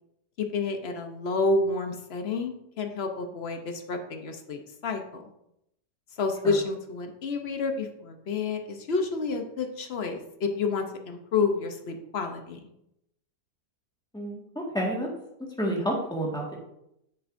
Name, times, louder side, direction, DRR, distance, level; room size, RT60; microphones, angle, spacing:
voice 1, 0.4-5.2 6.2-12.6, left 4 dB, 50° left, 5 dB, 0.9 m, -29 dB
voice 2, 14.1-15.1 15.6-16.5, right 1 dB, 5° left, -2 dB, 1.5 m, -29 dB
8.7 x 6.7 x 2.6 m, 0.80 s
omnidirectional pair, 1.6 m